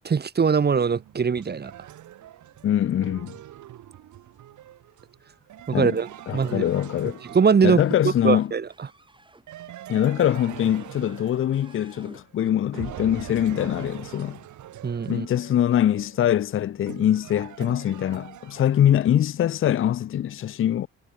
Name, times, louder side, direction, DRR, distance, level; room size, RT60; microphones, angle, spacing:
voice 1, 0.0-1.7 5.7-6.6 7.3-8.7 14.8-15.3, right 6 dB, 35° right, 1.5 m, -22 dB
sound 1, 0.7-8.1 9.5-12.3 12.7-19.2, right 13 dB, 75° right, 3.0 m, -43 dB
voice 2, 2.6-3.3 5.7-5.9 6.3-7.2 7.6-8.5 9.9-14.4 15.1-20.9, left 11 dB, 45° left, 0.6 m, -23 dB
sound 2, 7.3-9.5 10.3-11.3 11.5-12.5, right 2 dB, 15° right, 5.5 m, -53 dB
cardioid pair, 90°, 30 cm